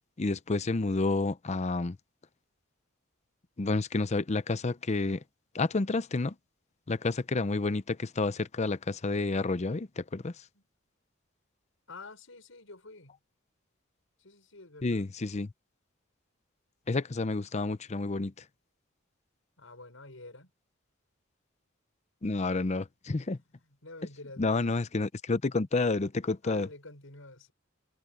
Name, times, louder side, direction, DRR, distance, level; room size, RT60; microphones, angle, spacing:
voice 1, 0.2-2.0 3.6-5.2 5.5-6.3 6.9-10.3 14.8-15.5 16.9-18.3 22.2-23.4 24.4-26.7, left 3 dB, 35° left, 0.6 m, -30 dB
voice 2, 11.9-13.2 14.2-15.1 19.6-20.5 23.2-24.8 26.4-27.5, left 2 dB, 80° left, 6.6 m, -49 dB
head